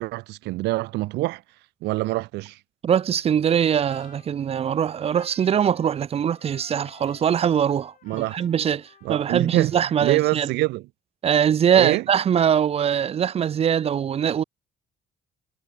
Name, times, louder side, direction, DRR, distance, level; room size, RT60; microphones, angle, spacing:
voice 1, 0.0-1.4 1.8-2.6 8.0-8.3 9.0-9.7 10.0-10.9 11.7-12.0, right 20 dB, 85° right, 0.8 m, -25 dB
voice 2, 2.8-10.5 11.2-14.4, right 8 dB, 35° right, 0.5 m, -22 dB
Trumpet, 3.4-10.2, left 10 dB, 50° left, 3.1 m, -54 dB
cardioid pair, 110°, 17 cm